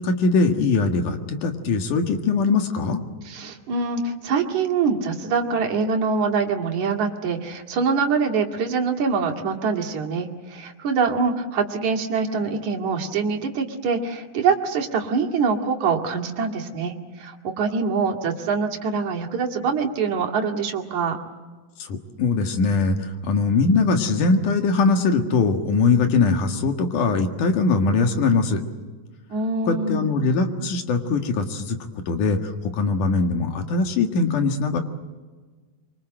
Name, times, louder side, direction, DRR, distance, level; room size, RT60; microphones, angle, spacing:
voice 1, 0.0-3.0 21.8-28.6 29.6-31.8 32.1-34.8, left 4 dB, 65° left, 5 dB, 3.2 m, -21 dB
voice 2, 3.2-21.2 29.3-30.2, right 5 dB, 55° right, 1 dB, 3.6 m, -24 dB
25.0 x 25.0 x 7.8 m, 1.4 s
omnidirectional pair, 4.1 m